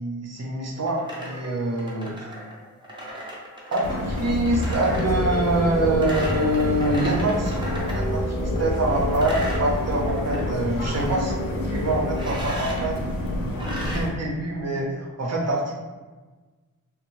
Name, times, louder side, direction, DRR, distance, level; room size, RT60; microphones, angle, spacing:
voice 1, 0.0-2.1 3.7-7.7 7.9-11.3 11.6-13.0 13.9-15.7, right 2 dB, 55° right, -2 dB, 0.6 m, -25 dB
sound 1, 0.8-8.1 8.5-10.4 10.7-11.2 12.1-12.9 13.5-14.0, right 1 dB, 15° right, 0.6 m, -36 dB
sound 2, 3.8-14.1, left 1 dB, 90° left, 0.5 m, -29 dB
sound 3, 4.9-12.2, left 1 dB, 25° left, 0.5 m, -31 dB
2.6 x 2.1 x 3.0 m, 1.3 s
wide cardioid pair, 70°, 32 cm